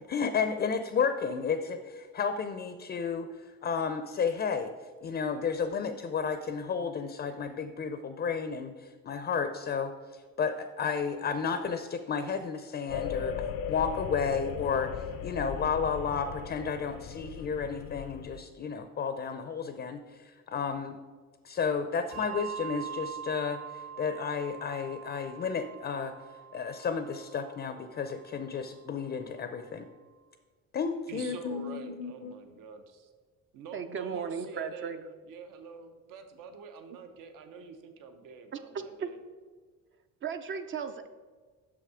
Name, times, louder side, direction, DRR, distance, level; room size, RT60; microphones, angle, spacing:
voice 1, 0.0-3.3 3.6-4.7 5.0-21.0 21.4-26.1 26.5-29.9 30.7-32.3, left 6 dB, 30° left, 9 dB, 0.4 m, -32 dB
sound 1, 12.9-18.4, left 9 dB, 85° left, 0.5 m, -38 dB
Bell, 22.1-29.0, right 8 dB, 60° right, 1.6 m, -44 dB
voice 2, 31.1-33.1 33.5-39.2, right 5 dB, 75° right, 7 dB, 0.9 m, -46 dB
voice 3, 33.7-35.0 38.5-39.1 40.2-41.1, right 6 dB, 40° right, 9 dB, 0.4 m, -36 dB
6.3 x 5.7 x 4.8 m, 1.5 s
cardioid pair, 115°, 33 cm